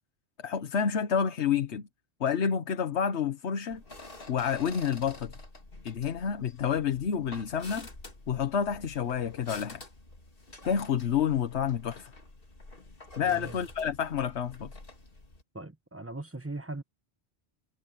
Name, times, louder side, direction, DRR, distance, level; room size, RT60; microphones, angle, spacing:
voice 1, 0.4-1.8 2.2-3.8 4.3-5.3 5.8-7.9 8.3-9.8 10.6-12.1 13.2-14.7, left 7 dB, 85° left, 1.3 m, -29 dB
sound 1, 3.7-15.4, left 2 dB, 55° left, 3.0 m, -48 dB
voice 2, 13.2-13.6 15.5-16.8, right 2 dB, 15° right, 1.0 m, -39 dB
omnidirectional pair, 1.1 m